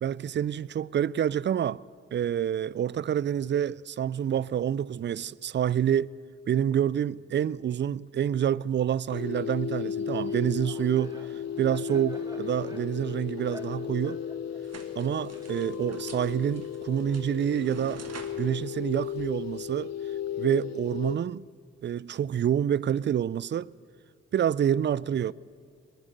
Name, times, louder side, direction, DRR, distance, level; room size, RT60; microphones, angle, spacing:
voice 1, 0.0-1.8 2.1-6.1 6.5-11.2 11.6-14.2 15.0-18.0 18.3-19.9 20.4-21.5 21.8-23.7 24.3-25.3, right 9 dB, 40° right, 0.4 m, -27 dB
sound 1, 9.1-21.2, left 8 dB, 60° left, 0.6 m, -35 dB
Laughter, 10.1-15.9, equal, 15° right, 1.8 m, -49 dB
sound 2, 14.6-19.9, right 5 dB, 60° right, 1.5 m, -49 dB
20.5 x 7.5 x 9.2 m
supercardioid pair, 40°, 29 cm